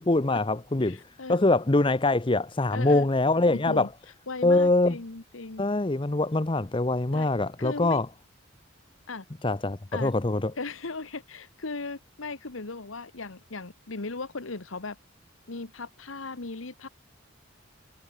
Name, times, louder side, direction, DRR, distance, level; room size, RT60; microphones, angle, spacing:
voice 1, 0.0-1.0 1.3-3.9 4.4-5.0 5.6-8.1 9.4-10.5, left 2 dB, 25° left, 0.7 m, -24 dB
voice 2, 0.8-1.4 2.7-3.1 3.5-3.9 4.3-5.6 7.1-7.3 7.6-8.0 9.1-9.2 9.9-10.1 10.6-15.0 15.5-16.9, left 3 dB, 90° left, 1.4 m, -37 dB
head